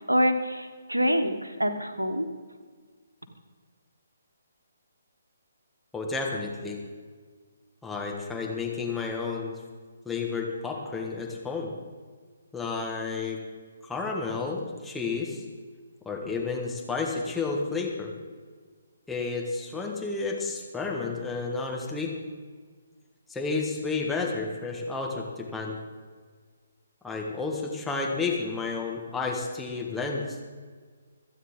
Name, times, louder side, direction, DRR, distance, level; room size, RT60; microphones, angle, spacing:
voice 1, 0.1-2.3, equal, 85° right, 7 dB, 1.4 m, -26 dB
voice 2, 5.9-6.8 7.8-9.6 10.0-11.7 12.5-13.4 13.9-15.4 16.0-18.1 19.1-22.1 23.3-25.8 27.0-30.4, left 4 dB, 5° left, -1 dB, 1.5 m, -31 dB
26.0 x 9.1 x 3.8 m, 1.6 s
figure-of-eight pair, 135°, 0 cm